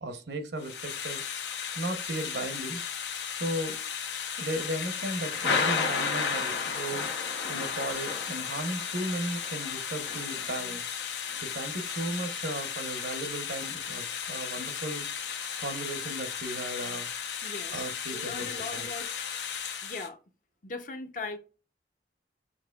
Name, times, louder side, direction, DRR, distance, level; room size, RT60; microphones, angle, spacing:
voice 1, 0.0-1.2 1.8-2.8 3.4-3.8 4.4-7.2 7.5-10.8 11.4-15.0 15.6-17.1 17.7-18.9, right 1 dB, 75° right, 0.8 m, -36 dB
Thunder / Rain, 0.6-20.1, left 6 dB, 85° left, 0.9 m, -34 dB
voice 2, 17.4-19.1 19.8-20.2 20.6-21.4, left 3 dB, 45° left, 0.7 m, -39 dB
6.6 x 2.9 x 2.3 m
head